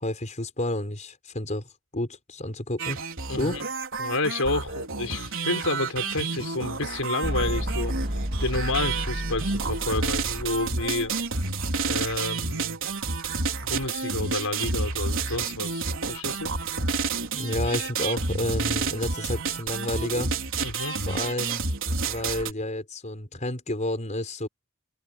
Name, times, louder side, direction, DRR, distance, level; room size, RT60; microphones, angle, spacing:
voice 1, 0.0-3.0 3.3-3.6 17.3-20.3 21.1-21.6 22.0-24.5, left 1 dB, 35° left, 5.0 m, -30 dB
sound 1, 2.8-22.5, right 4 dB, 60° right, 4.5 m, -30 dB
voice 2, 3.3-3.6 4.0-8.0 8.4-11.1 11.9-12.8 13.6-16.5 20.6-21.0, left 2 dB, 70° left, 5.8 m, -30 dB
sound 2, 7.2-11.8, equal, 45° right, 2.7 m, -32 dB
head